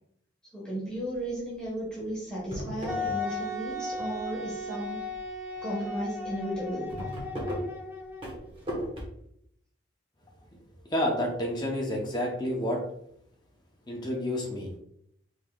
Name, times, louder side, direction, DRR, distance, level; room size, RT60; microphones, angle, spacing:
voice 1, 0.5-5.0 5.6-6.9, right 1 dB, 5° left, -7 dB, 1.2 m, -34 dB
sound 1, 1.1-1.5 1.9-2.0 2.3-3.7 4.0-4.6 5.1-5.3 5.6-5.7 5.9-6.0 6.4-9.0, equal, 25° right, 1.2 m, -36 dB
Wind instrument woodwind instrument, 2.9-8.5, left 2 dB, 10° right, 0.7 m, -36 dB
voice 2, 10.9-12.8 13.9-14.7, left 1 dB, 20° left, 0 dB, 0.7 m, -29 dB
5.2 x 3.6 x 2.3 m, 0.72 s
head